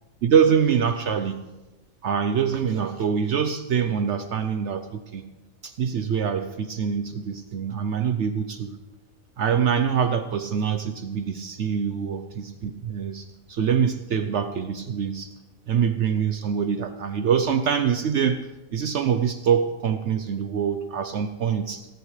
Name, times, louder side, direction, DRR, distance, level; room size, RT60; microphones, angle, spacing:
voice 1, 0.2-1.4 2.0-5.3 5.6-8.8 9.4-15.3 15.7-18.4 18.7-21.9, right 7 dB, 65° right, 9 dB, 0.9 m, -24 dB
19.5 x 17.0 x 3.2 m, 1.1 s
omnidirectional pair, 1.4 m